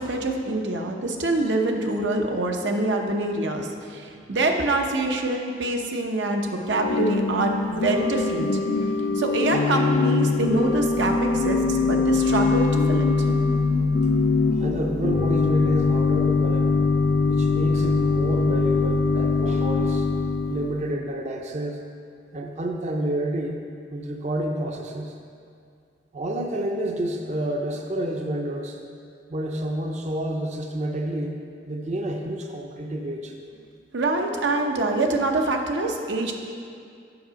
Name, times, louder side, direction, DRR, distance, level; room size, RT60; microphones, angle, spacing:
voice 1, 0.0-8.5 8.8-13.3 33.9-36.3, right 2 dB, 90° right, 3 dB, 0.8 m, -25 dB
Organ / Church bell, 6.7-20.8, left 4 dB, 55° left, 0.4 m, -22 dB
voice 2, 14.5-16.7 17.3-20.1 20.5-21.8 22.3-23.6 23.9-25.2 26.1-28.8 29.3-31.4 31.7-33.4, right 1 dB, 40° right, 3 dB, 0.5 m, -29 dB
7.8 x 5.5 x 5.1 m, 2.3 s
head